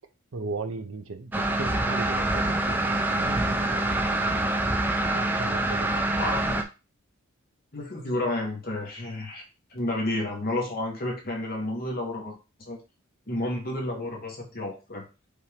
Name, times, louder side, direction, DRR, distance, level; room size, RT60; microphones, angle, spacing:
voice 1, 0.3-4.5 5.1-6.2, right 3 dB, 65° right, 8 dB, 0.6 m, -37 dB
sound 1, 1.3-6.6, right 1 dB, 10° right, 0.3 m, -25 dB
voice 2, 6.2-6.6 7.7-9.4 9.7-12.4 12.7-12.8 13.3-15.1, left 1 dB, 45° left, -1 dB, 1.2 m, -31 dB
5.2 x 2.6 x 3.4 m, 0.30 s
head